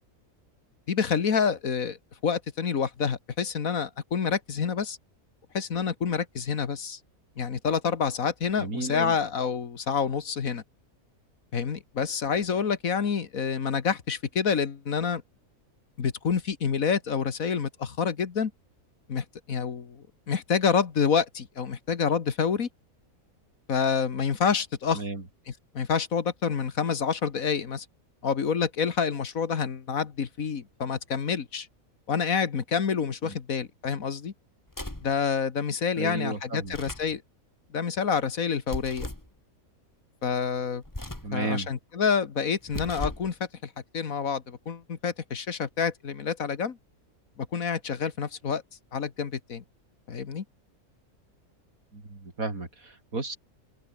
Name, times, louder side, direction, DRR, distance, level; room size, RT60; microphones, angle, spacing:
voice 1, 0.9-2.0 2.2-5.0 5.5-7.0 7.4-10.6 11.5-15.2 16.0-18.5 19.1-22.7 23.7-25.0 25.7-27.9 28.2-31.7 32.1-34.3 35.0-37.2 37.7-39.1 40.2-40.8 41.3-43.4 43.6-46.8 47.4-48.6 48.9-49.6 50.1-50.4, left 6 dB, 70° left, 1.9 m, -28 dB
voice 2, 8.6-9.2 24.9-25.2 33.2-33.4 36.0-36.8 41.2-41.7 51.9-53.4, right 2 dB, 70° right, 5.0 m, -33 dB
sound 1, 34.7-35.1 36.6-37.1 38.7-39.3 40.8-41.4 42.6-43.3, left 1 dB, 15° left, 2.4 m, -37 dB
open air
omnidirectional pair, 1.5 m